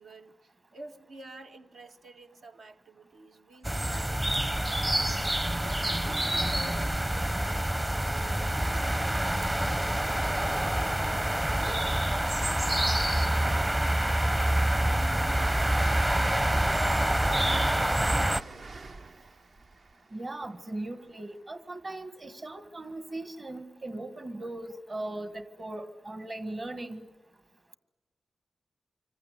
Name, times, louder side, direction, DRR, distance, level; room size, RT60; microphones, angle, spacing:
voice 1, 0.0-5.8 6.2-10.2 10.6-11.0 11.5-18.3, right 2 dB, 80° right, 3 dB, 2.0 m, -48 dB
sound 1, 3.6-18.4, right 1 dB, 20° right, 0.9 m, -27 dB
Train, 14.3-21.4, right 3 dB, 55° right, 0.9 m, -47 dB
voice 2, 20.1-27.1, right 2 dB, 35° right, 10 dB, 1.8 m, -38 dB
26.0 x 25.5 x 8.3 m, 1.0 s
cardioid pair, 75°, 0 cm